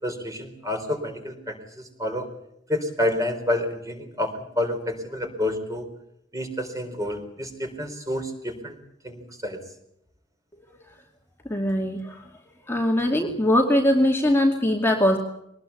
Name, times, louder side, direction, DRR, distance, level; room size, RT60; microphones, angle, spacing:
voice 1, 0.0-1.6 2.0-2.3 2.7-5.8 6.3-8.8 9.0-9.6, left 1 dB, 15° right, 5 dB, 4.1 m, -29 dB
voice 2, 11.5-12.2 12.7-15.2, left 1 dB, 10° left, 2 dB, 2.3 m, -21 dB
23.0 x 19.5 x 8.3 m, 0.78 s
head